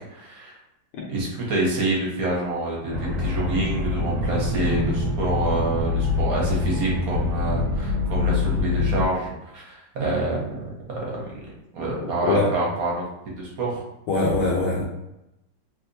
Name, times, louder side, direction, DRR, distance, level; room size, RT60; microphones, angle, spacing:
voice 1, 0.1-0.6 1.1-10.5 10.9-13.8, right 2 dB, 60° right, -4 dB, 1.3 m, -27 dB
sound 1, 2.9-9.1, left 3 dB, 80° right, 1.4 m, -25 dB
voice 2, 12.0-12.5 14.1-14.8, left 2 dB, 75° left, -2 dB, 1.1 m, -23 dB
3.3 x 2.7 x 2.6 m, 0.89 s
omnidirectional pair, 1.9 m